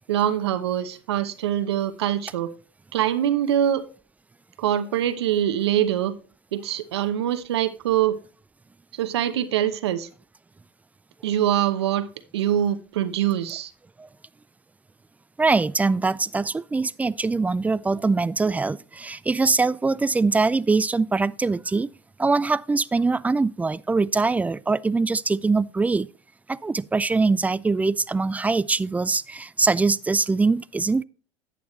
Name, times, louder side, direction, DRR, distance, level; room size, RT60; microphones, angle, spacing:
voice 1, 0.1-2.5 2.9-3.8 4.6-6.1 6.5-8.2 8.9-10.1 11.2-12.1 12.3-13.7, right 11 dB, 85° right, 0.9 m, -24 dB
voice 2, 15.4-21.9 22.2-26.1 26.5-31.0, right 3 dB, 10° right, 0.3 m, -23 dB
11.0 x 8.5 x 3.1 m
hypercardioid pair, 85°, 13 cm